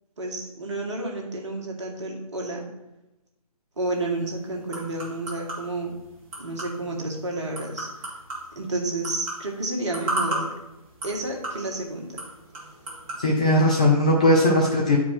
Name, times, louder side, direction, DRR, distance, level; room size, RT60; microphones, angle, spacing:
voice 1, 0.2-2.6 3.8-5.9 6.4-7.9 8.6-10.5 11.0-12.2, right 2 dB, 50° right, 1 dB, 1.8 m, -30 dB
sound 1, 3.8-13.2, right 2 dB, 25° right, 2.2 m, -36 dB
voice 2, 13.2-15.0, left 1 dB, 10° left, -2 dB, 0.3 m, -19 dB
9.5 x 4.6 x 4.4 m, 0.96 s
figure-of-eight pair, 145°, 19 cm